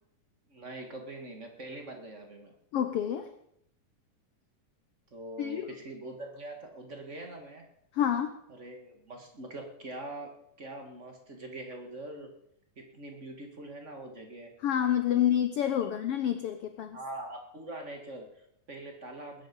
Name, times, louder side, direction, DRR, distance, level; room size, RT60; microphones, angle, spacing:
voice 1, 0.5-2.5 5.1-7.7 8.5-12.3 12.7-14.5 15.1-15.2 15.8-15.9 16.9-19.5, right 2 dB, 30° right, 3 dB, 1.6 m, -43 dB
voice 2, 2.7-3.3 5.4-5.8 7.9-8.3 14.6-17.0, left 10 dB, 90° left, 9 dB, 1.3 m, -28 dB
20.0 x 10.5 x 5.4 m, 0.73 s
omnidirectional pair, 3.7 m